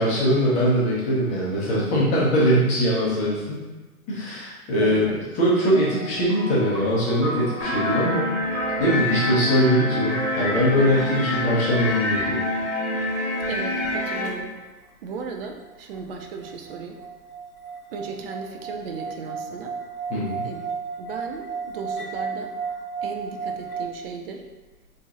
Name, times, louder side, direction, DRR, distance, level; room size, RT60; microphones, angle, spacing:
voice 1, 0.0-3.6 4.1-5.1 5.4-8.2 8.8-12.4 20.1-20.4, equal, 15° left, -7 dB, 0.6 m, -22 dB
voice 2, 4.8-5.3 10.8-11.1 13.5-14.6 15.0-17.0 17.9-19.8 20.4-20.7 21.0-22.5 23.0-24.4, right 4 dB, 40° right, 3 dB, 0.4 m, -36 dB
sound 1, 5.6-11.4, right 1 dB, 5° right, 0.9 m, -37 dB
sound 2, 7.6-14.3, left 1 dB, 40° left, 0.8 m, -26 dB
sound 3, 15.4-23.8, right 5 dB, 90° left, 0.7 m, -34 dB
4.0 x 2.8 x 2.4 m, 1.2 s
hypercardioid pair, 140°, 46 cm